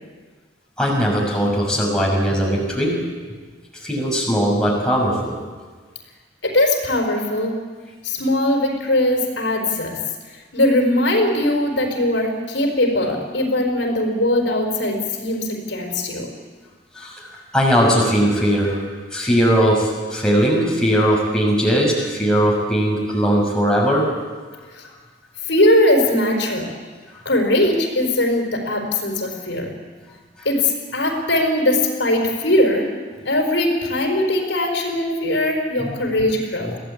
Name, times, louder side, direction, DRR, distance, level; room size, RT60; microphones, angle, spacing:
voice 1, 0.8-3.0 3.8-5.4 16.9-18.8 19.1-24.1 35.8-35.9, equal, 5° left, -3 dB, 6.3 m, -19 dB
voice 2, 6.4-7.6 8.0-10.0 10.3-16.3 24.7-24.9 25.4-26.7 27.2-29.7 30.4-32.9 33.2-36.8, left 1 dB, 85° left, 2 dB, 4.7 m, -20 dB
23.5 x 16.5 x 8.6 m, 1.5 s
head